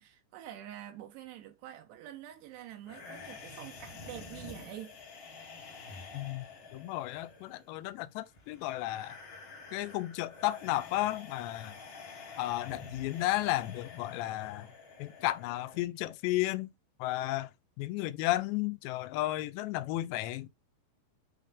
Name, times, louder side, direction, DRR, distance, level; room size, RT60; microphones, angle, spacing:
voice 1, 0.0-4.9, right 12 dB, 85° right, 2.8 m, -46 dB
sound 1, 2.8-15.8, left 4 dB, 55° left, 1.3 m, -49 dB
voice 2, 6.1-6.5 6.7-9.2 9.7-11.8 12.4-14.7 15.0-16.7 17.0-17.5 17.8-20.5, left 16 dB, 85° left, 2.8 m, -33 dB
8.5 x 3.5 x 3.6 m
omnidirectional pair, 5.0 m